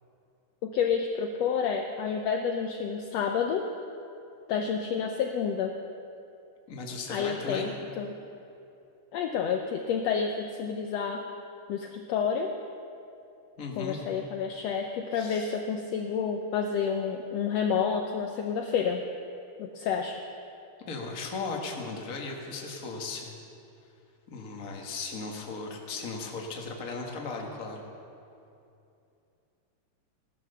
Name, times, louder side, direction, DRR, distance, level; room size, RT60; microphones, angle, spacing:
voice 1, 0.6-3.7 4.5-5.8 7.1-7.7 8.0-8.1 9.1-11.2 11.7-12.5 13.8-19.0 19.6-20.2, left 6 dB, 80° left, 4 dB, 1.5 m, -29 dB
voice 2, 6.7-7.7 13.6-14.0 15.1-15.5 20.9-23.4 24.3-27.8, left 4 dB, 35° left, 1 dB, 1.4 m, -37 dB
16.0 x 12.5 x 6.8 m, 2.7 s
omnidirectional pair, 3.9 m